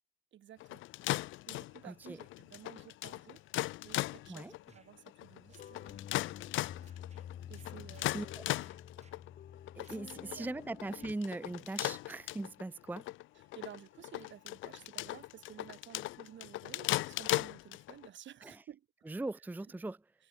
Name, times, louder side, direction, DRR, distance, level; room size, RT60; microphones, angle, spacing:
voice 1, 0.3-0.8 1.5-3.4 3.8-6.0 7.5-8.3 9.9-10.5 13.5-18.9, right 11 dB, 70° right, 4.0 m, -53 dB
sound 1, 0.6-18.1, left 18 dB, 80° left, 0.4 m, -38 dB
voice 2, 1.8-2.2 4.3-4.5 8.1-8.4 9.7-13.1 18.4-18.6 19.1-20.0, right 2 dB, 10° right, 0.6 m, -40 dB
sound 2, 4.7-4.9 5.5-5.7 6.2-7.3 7.5-8.1 8.6-9.2 9.8-10.0 10.4-10.6 10.9-11.2, right 5 dB, 35° right, 7.4 m, -65 dB
sound 3, 5.4-11.1, left 10 dB, 55° left, 0.8 m, -49 dB
cardioid pair, 90°, 20 cm